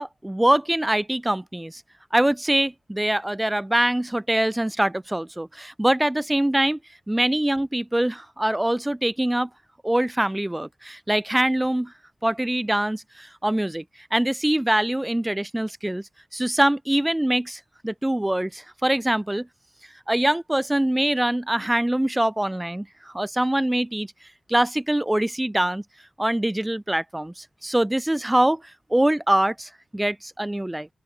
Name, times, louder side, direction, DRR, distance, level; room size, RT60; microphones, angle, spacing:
voice 1, 0.0-1.8 2.1-6.8 7.1-9.5 9.8-11.9 12.2-13.8 14.1-19.5 20.1-24.1 24.5-25.8 26.2-28.6 28.9-30.9, right 1 dB, 10° right, 1.3 m, -23 dB
open air
wide cardioid pair, 160°, 0 cm